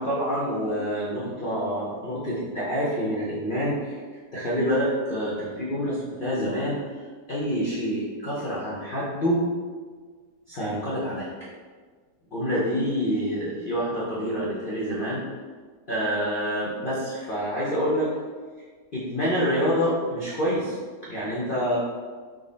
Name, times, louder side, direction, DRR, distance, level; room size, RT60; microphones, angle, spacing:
voice 1, 0.0-4.0 4.3-6.8 7.3-9.4 10.5-11.3 12.3-15.2 15.9-18.1 18.9-20.8 21.1-21.8, equal, 75° left, -7 dB, 0.4 m, -27 dB
3.7 x 2.0 x 3.8 m, 1.5 s
omnidirectional pair, 1.8 m